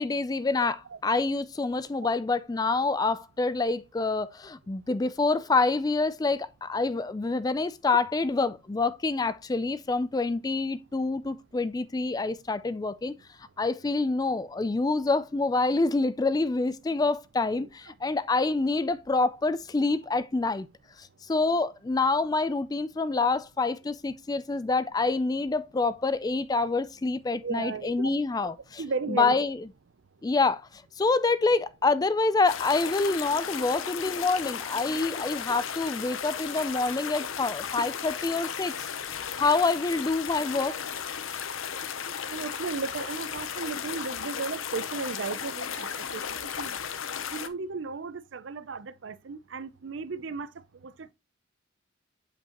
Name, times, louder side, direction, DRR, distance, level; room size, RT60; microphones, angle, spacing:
voice 1, 0.0-13.1 13.6-20.7 21.0-28.8 29.1-29.6 30.2-38.9 39.3-40.8, left 3 dB, 20° left, 0.3 m, -27 dB
voice 2, 27.4-28.1 28.8-29.4 42.3-46.8 47.3-50.5 50.8-51.1, right 4 dB, 65° right, 0.5 m, -35 dB
sound 1, 32.5-47.5, left 7 dB, 85° left, 0.8 m, -35 dB
7.8 x 5.3 x 2.9 m
head